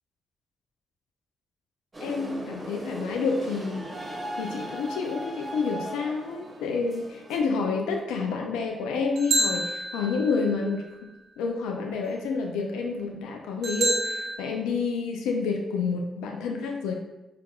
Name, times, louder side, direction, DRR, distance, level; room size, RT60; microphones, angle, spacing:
sound 1, 1.9-7.4, right 1 dB, 35° right, 0.9 m, -38 dB
voice 1, 2.0-3.9 4.4-11.1 11.4-16.9, left 4 dB, 85° left, 2 dB, 0.3 m, -29 dB
sound 2, 9.2-10.5 13.6-14.4, right 1 dB, 75° right, 0.6 m, -27 dB
4.5 x 2.4 x 2.3 m, 0.99 s
hypercardioid pair, 45°, 0 cm